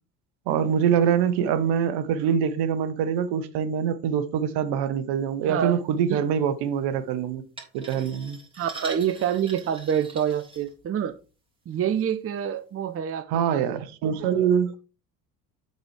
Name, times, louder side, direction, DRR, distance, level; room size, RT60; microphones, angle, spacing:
voice 1, 0.5-7.4 7.7-8.4 13.3-14.7, right 8 dB, 55° right, 1.1 m, -24 dB
voice 2, 5.5-6.2 8.5-11.1 11.7-13.6, right 9 dB, 30° right, 0.7 m, -27 dB
sound 1, 7.6-11.2 11.7-12.0 12.6-12.7, right 3 dB, 10° right, 3.1 m, -43 dB
8.0 x 4.2 x 4.8 m
figure-of-eight pair, 60°, 47 cm